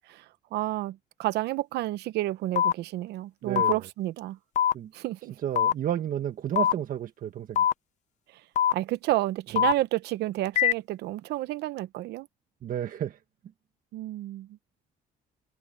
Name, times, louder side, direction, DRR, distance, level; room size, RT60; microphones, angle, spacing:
voice 1, 0.5-4.4 4.9-5.3 8.7-12.3 13.9-14.5, right 16 dB, 80° right, 0.9 m, -30 dB
sound 1, 2.6-2.7 3.6-3.7 4.6-4.7 5.6-5.7 6.6-6.7 7.6-7.7 8.6-8.7 9.6-9.7 10.6-10.7, left 10 dB, 45° left, 0.5 m, -22 dB
voice 2, 3.4-3.8 4.7-4.9 5.4-7.6 9.5-9.7 12.6-13.2, right 10 dB, 55° right, 1.5 m, -31 dB
cardioid pair, 110°, 17 cm